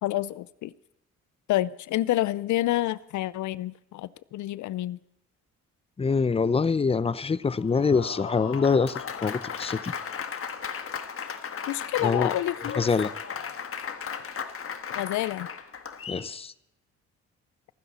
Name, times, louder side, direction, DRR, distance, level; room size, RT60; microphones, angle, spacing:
voice 1, 0.0-0.7 1.5-5.0 11.7-12.8 14.9-15.5, left 15 dB, 75° left, 0.5 m, -28 dB
voice 2, 6.0-9.9 12.0-12.3 12.8-13.1 16.1-16.5, left 5 dB, 20° left, 0.5 m, -25 dB
Applause, 7.6-16.3, left 7 dB, 45° left, 1.4 m, -36 dB
27.0 x 10.0 x 4.2 m
cardioid pair, 90°, 30 cm